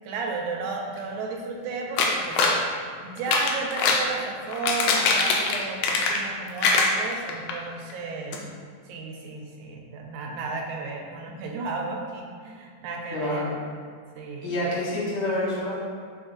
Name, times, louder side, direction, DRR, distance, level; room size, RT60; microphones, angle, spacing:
voice 1, 0.0-8.4 8.9-13.5 14.2-14.6, right 4 dB, 80° right, 1 dB, 1.9 m, -33 dB
sound 1, 2.0-2.6 3.2-4.1 4.5-6.3 6.6-7.5 7.9-8.0 8.3-8.4, left 3 dB, 90° left, 1.5 m, -22 dB
voice 2, 13.1-13.6 14.4-15.8, left 1 dB, 60° left, -6 dB, 1.7 m, -27 dB
4.3 x 4.3 x 2.5 m, 2.1 s
omnidirectional pair, 3.8 m